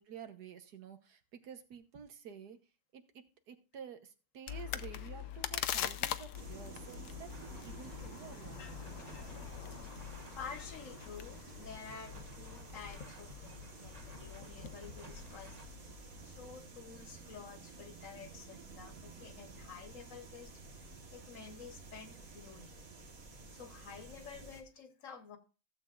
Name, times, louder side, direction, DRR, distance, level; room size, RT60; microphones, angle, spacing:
voice 1, 0.0-2.6 2.9-7.3 7.6-8.6, right 7 dB, 80° right, 8 dB, 1.6 m, -51 dB
sound 1, 4.5-16.5, left 11 dB, 80° left, 1.2 m, -44 dB
sound 2, 6.3-24.6, right 4 dB, 60° right, 1.9 m, -52 dB
sound 3, 7.3-15.7, equal, 30° right, 1.2 m, -56 dB
voice 2, 8.6-9.3 9.7-9.8 10.4-15.6 16.2-22.7 23.5-25.4, left 6 dB, 55° left, 8 dB, 1.5 m, -50 dB
15.5 x 7.8 x 2.5 m, 0.33 s
omnidirectional pair, 1.7 m